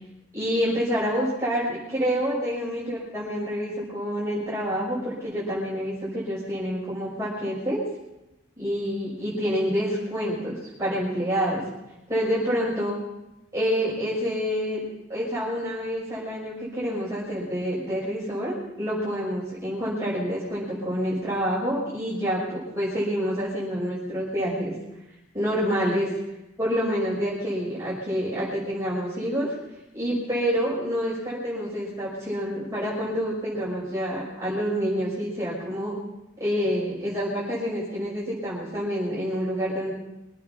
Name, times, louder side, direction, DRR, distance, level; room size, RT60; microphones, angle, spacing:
voice 1, 0.3-7.8 8.6-11.6 12.1-13.0 13.5-14.8 15.1-24.7 25.3-26.1 26.6-29.5 29.9-36.0 36.4-39.9, equal, 15° right, -9 dB, 5.9 m, -27 dB
24.5 x 9.2 x 5.9 m, 0.92 s
head